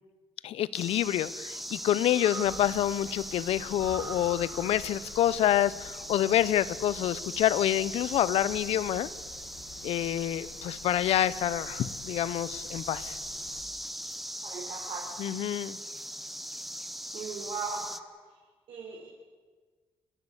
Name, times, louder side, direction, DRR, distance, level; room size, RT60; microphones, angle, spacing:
voice 1, 0.4-9.1 9.8-13.2 15.2-15.8, left 12 dB, 80° left, 19 dB, 0.8 m, -27 dB
sound 1, 0.7-18.0, equal, ahead, 0.9 m, -40 dB
Breathing, 0.9-3.1 3.4-3.5 3.7-5.4, right 4 dB, 40° right, 3.1 m, -45 dB
sound 2, 2.4-13.6, left 4 dB, 30° left, 2.0 m, -51 dB
voice 2, 14.4-15.1 17.1-18.0 18.7-19.1, right 5 dB, 65° right, -3 dB, 4.5 m, -38 dB
29.5 x 12.5 x 8.1 m, 1.4 s
cardioid pair, 150°, 10 cm